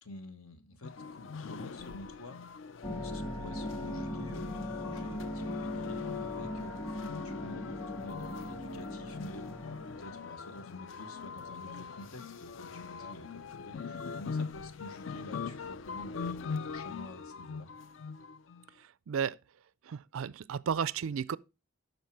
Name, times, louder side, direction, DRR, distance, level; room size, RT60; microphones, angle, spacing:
voice 1, 0.0-17.7, left 2 dB, 80° left, 1.3 m, -49 dB
sound 1, 0.8-18.7, left 5 dB, 60° left, 0.4 m, -42 dB
sound 2, 2.8-10.2, left 1 dB, 25° left, 1.1 m, -39 dB
voice 2, 18.7-19.4 19.8-21.4, right 7 dB, 70° right, 0.4 m, -34 dB
12.0 x 4.4 x 4.6 m
head